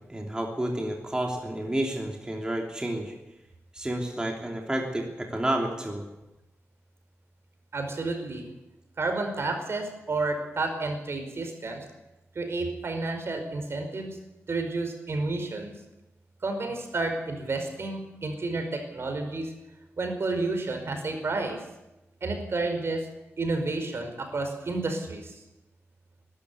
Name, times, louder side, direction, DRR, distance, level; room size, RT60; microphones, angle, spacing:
voice 1, 0.1-3.1 3.7-6.1, right 1 dB, 15° right, 1 dB, 3.2 m, -30 dB
voice 2, 7.7-8.5 9.0-11.8 12.3-14.2 14.5-15.7 16.4-19.5 20.0-21.6 22.2-23.1 23.4-25.3, right 3 dB, 60° right, 5 dB, 5.0 m, -30 dB
21.0 x 13.0 x 9.8 m, 0.98 s
wide cardioid pair, 95°, 5 cm